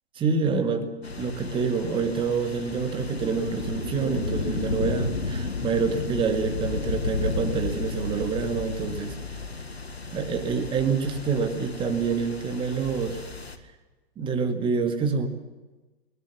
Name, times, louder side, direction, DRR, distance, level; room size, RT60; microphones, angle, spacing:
voice 1, 0.2-9.2 10.1-13.2 14.2-15.3, right 5 dB, 15° right, 6 dB, 2.2 m, -27 dB
sound 1, 1.0-13.6, left 3 dB, 85° left, 1.9 m, -33 dB
21.0 x 20.5 x 7.4 m, 1.2 s
figure-of-eight pair, 115°, 31 cm